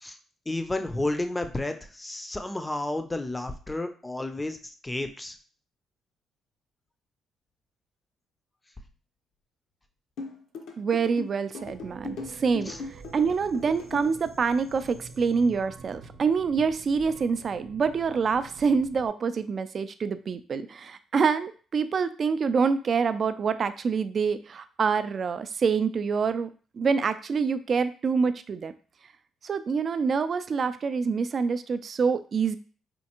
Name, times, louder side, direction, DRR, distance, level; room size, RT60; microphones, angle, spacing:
voice 1, 0.5-5.4 12.7-12.8, left 2 dB, 15° left, 7 dB, 0.5 m, -31 dB
sound 1, 10.2-14.1, left 3 dB, 80° left, 0.7 m, -38 dB
voice 2, 10.8-26.5 26.7-28.7 29.4-32.6, right 5 dB, 50° right, 11 dB, 0.3 m, -26 dB
sound 2, 11.6-19.1, right 4 dB, 80° right, 0.7 m, -47 dB
4.3 x 2.3 x 2.9 m, 0.39 s
cardioid pair, 90°, 0 cm